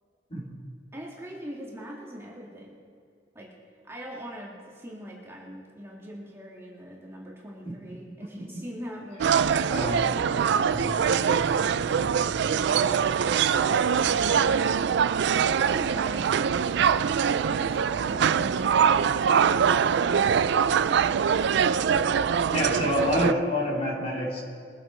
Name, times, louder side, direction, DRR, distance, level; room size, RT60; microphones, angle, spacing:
voice 1, 0.9-2.8 3.3-3.5 3.8-9.7 12.7-14.3 15.7-16.7 17.4-19.2 19.4-21.1, equal, 15° right, -3 dB, 1.9 m, -42 dB
voice 2, 8.0-8.6 9.7-10.0 22.2-22.3 22.5-24.4, left 1 dB, 35° left, -3 dB, 3.0 m, -28 dB
sound 1, 9.2-23.3, right 7 dB, 65° right, 0.4 m, -23 dB
sound 2, 10.7-18.6, right 2 dB, 5° left, 4.1 m, -44 dB
22.0 x 8.2 x 4.4 m, 2.3 s
head